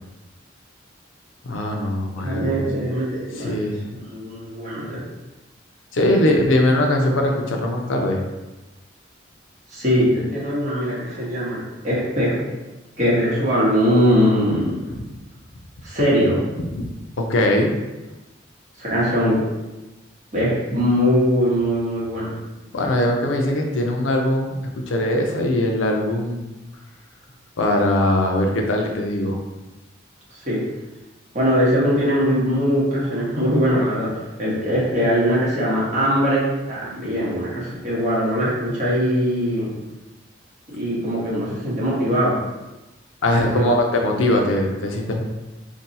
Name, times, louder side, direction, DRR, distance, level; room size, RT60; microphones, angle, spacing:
voice 1, 1.4-2.6 3.4-3.8 5.9-8.2 16.8-16.9 17.2-17.7 22.7-24.6 24.9-26.5 27.6-29.4 43.2-45.2, left 1 dB, 90° left, 2 dB, 0.5 m, -21 dB
voice 2, 2.2-3.5 3.9-5.0 6.0-6.4 9.7-12.4 13.0-14.8 15.8-16.4 18.8-19.4 20.3-22.3 30.4-30.6 31.3-34.1 34.4-39.7 40.7-42.4 43.3-43.7, equal, 40° right, -7 dB, 1.0 m, -21 dB
2.7 x 2.2 x 4.0 m, 1.1 s
head